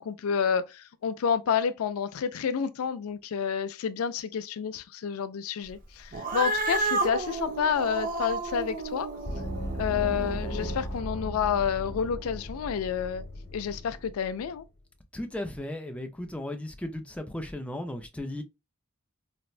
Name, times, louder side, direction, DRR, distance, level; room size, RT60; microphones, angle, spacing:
voice 1, 0.0-9.1 9.8-13.2 13.5-14.6, left 7 dB, 80° left, 0.4 m, -29 dB
Cat, 6.1-10.8, right 3 dB, 40° right, 0.6 m, -31 dB
Gong, 9.2-14.5, equal, 50° left, 1.1 m, -36 dB
voice 2, 15.1-18.4, left 1 dB, 5° left, 0.4 m, -36 dB
4.2 x 2.1 x 2.4 m
head